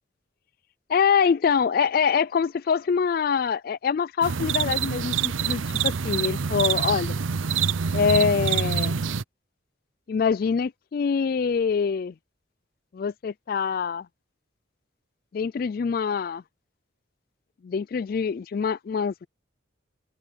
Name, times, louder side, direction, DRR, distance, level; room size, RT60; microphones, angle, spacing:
voice 1, 0.9-7.2 7.9-8.9 10.1-12.1 12.9-14.1 15.3-16.4 17.6-19.3, left 6 dB, 50° left, 0.3 m, -24 dB
sound 1, 4.2-9.2, right 7 dB, 90° right, 0.6 m, -26 dB
open air
head